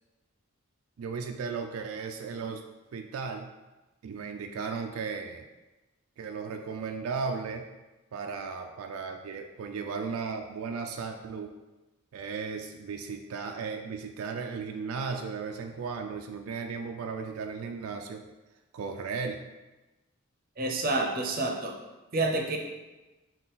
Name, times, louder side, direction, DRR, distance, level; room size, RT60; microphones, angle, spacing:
voice 1, 1.0-2.6 2.9-3.5 4.0-5.4 6.2-7.7 8.1-11.5 12.1-18.3 18.7-19.4, right 5 dB, 85° right, 5 dB, 0.3 m, -35 dB
voice 2, 20.6-21.8 22.1-22.6, right 2 dB, 45° right, 2 dB, 0.6 m, -28 dB
5.5 x 2.3 x 4.0 m, 1.1 s
head